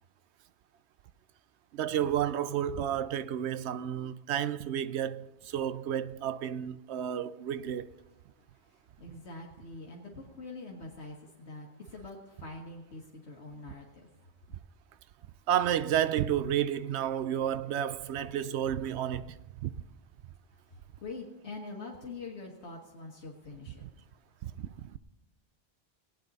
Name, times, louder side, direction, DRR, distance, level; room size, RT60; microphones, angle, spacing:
voice 1, 1.7-7.9 15.5-19.8 23.8-23.9 24.4-25.0, right 10 dB, 80° right, 0.8 m, -31 dB
voice 2, 9.0-14.1 21.0-23.9, left 3 dB, 75° left, 1.7 m, -44 dB
19.5 x 9.0 x 4.0 m
omnidirectional pair, 1.1 m